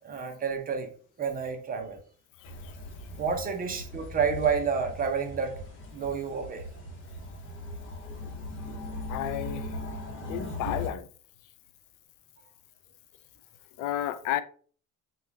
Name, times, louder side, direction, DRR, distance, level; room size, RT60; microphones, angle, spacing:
voice 1, 0.0-0.9 1.2-2.0 3.2-5.6 5.9-6.6, right 6 dB, 30° right, 0.6 m, -29 dB
voice 2, 2.4-2.7 9.1-9.7 10.3-11.1 13.8-14.4, left 12 dB, 75° left, 0.5 m, -32 dB
sound 1, 2.4-10.9, left 1 dB, 40° left, 0.9 m, -39 dB
5.5 x 2.3 x 3.3 m
cardioid pair, 155°, 31 cm